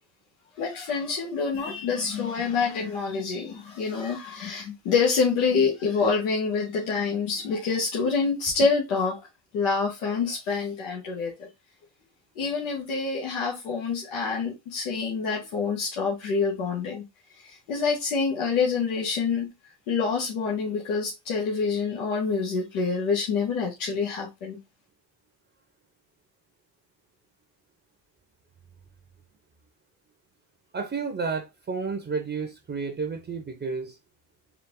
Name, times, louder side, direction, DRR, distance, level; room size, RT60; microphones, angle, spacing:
voice 1, 0.6-9.2 9.5-11.5 12.3-17.0 17.4-19.5 19.9-24.6, left 5 dB, 85° left, 1.5 m, -27 dB
voice 2, 30.7-34.0, right 5 dB, 25° right, 0.8 m, -31 dB
4.6 x 2.4 x 3.7 m
supercardioid pair, 85°, 47 cm